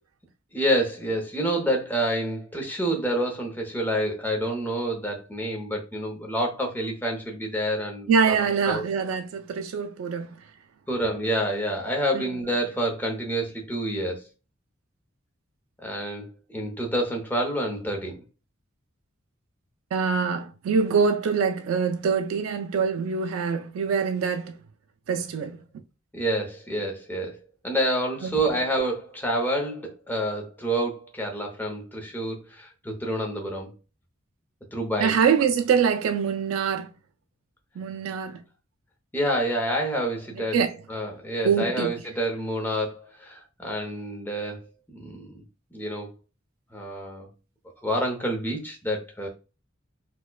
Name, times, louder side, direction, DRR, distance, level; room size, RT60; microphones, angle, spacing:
voice 1, 0.5-8.4 8.6-8.8 10.9-14.3 15.8-18.2 26.1-27.4 27.6-33.7 34.7-35.1 39.1-40.6 40.9-44.6 44.9-45.4 45.7-46.1 46.7-47.3 47.8-49.3, right 1 dB, 10° left, 0.7 m, -28 dB
voice 2, 8.1-10.4 12.1-12.3 19.9-24.6 25.1-25.6 28.2-28.3 35.0-36.9 37.8-38.4 40.3-40.8 41.4-41.9, right 6 dB, 85° right, 0.3 m, -24 dB
4.4 x 2.2 x 2.2 m
head